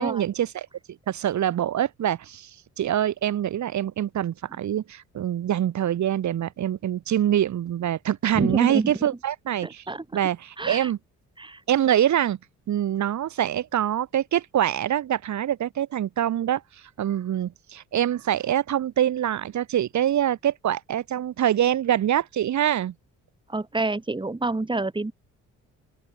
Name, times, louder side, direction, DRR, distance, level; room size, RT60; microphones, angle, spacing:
voice 1, 0.0-9.8 10.1-11.0 11.7-12.4 12.7-22.9, right 11 dB, 70° right, 4.6 m, -25 dB
voice 2, 8.3-8.9 9.6-10.0 10.6-10.9 11.4-11.6 23.5-25.1, right 2 dB, 15° right, 4.7 m, -27 dB
open air
cardioid pair, 90°, 30 cm